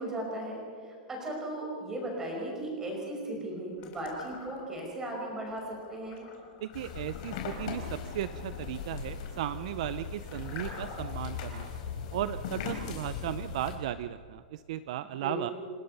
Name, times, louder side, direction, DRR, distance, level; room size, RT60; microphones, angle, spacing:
voice 1, 0.0-6.2 15.0-15.5, right 1 dB, 10° right, -1 dB, 5.6 m, -37 dB
sound 1, 3.8-4.9 5.3-11.2, left 4 dB, 30° left, 4.0 m, -49 dB
voice 2, 6.6-11.7 12.1-15.5, right 12 dB, 50° right, 13 dB, 0.6 m, -36 dB
sound 2, 6.7-13.8, left 6 dB, 50° left, 4.4 m, -39 dB
28.5 x 18.5 x 5.5 m, 2.1 s
supercardioid pair, 165°, 5 cm